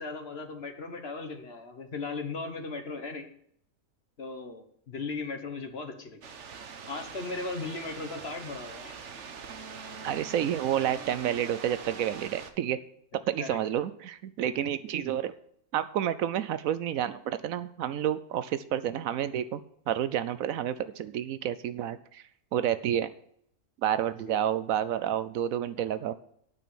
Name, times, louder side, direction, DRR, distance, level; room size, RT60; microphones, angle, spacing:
voice 1, 0.0-3.3 4.2-6.2 6.9-9.0 13.4-13.6 24.2-24.5, left 3 dB, 45° left, 7 dB, 1.4 m, -37 dB
sound 1, 6.2-12.5, right 6 dB, 55° right, 1.2 m, -43 dB
voice 2, 10.0-12.8 13.3-15.3 15.7-22.2 22.5-23.1 23.8-26.1, right 10 dB, 70° right, 14 dB, 1.0 m, -30 dB
9.2 x 6.1 x 8.4 m, 0.67 s
omnidirectional pair, 1.5 m